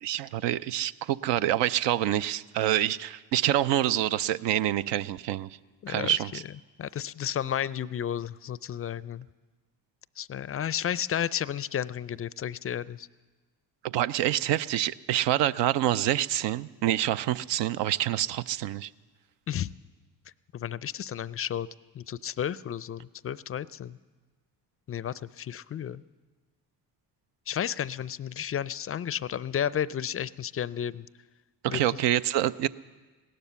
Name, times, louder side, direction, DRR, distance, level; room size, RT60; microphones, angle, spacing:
voice 1, 0.0-5.5 5.9-6.4 13.8-18.9 31.6-32.7, right 12 dB, 70° right, 15 dB, 0.5 m, -26 dB
voice 2, 6.8-9.3 10.2-13.1 19.5-19.7 20.5-21.7 21.9-24.0 24.9-26.0 27.5-31.1 31.7-32.0, left 9 dB, 30° left, 20 dB, 0.4 m, -32 dB
17.0 x 12.0 x 6.9 m, 1.3 s
supercardioid pair, 55°, 44 cm